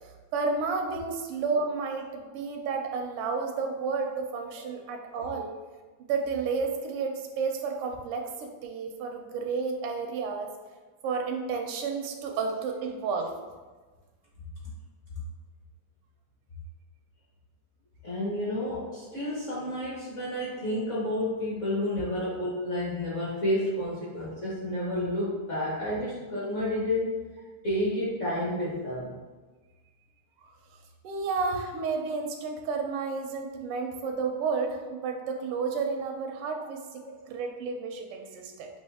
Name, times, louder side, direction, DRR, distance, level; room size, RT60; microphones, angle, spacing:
voice 1, 0.0-5.5 6.0-10.5 11.0-13.3 31.0-38.7, right 4 dB, 85° right, 3 dB, 1.6 m, -31 dB
voice 2, 18.0-27.1 27.6-29.1 37.0-37.1, left 1 dB, 45° left, -7 dB, 1.0 m, -30 dB
5.4 x 2.8 x 3.4 m, 1.3 s
omnidirectional pair, 2.4 m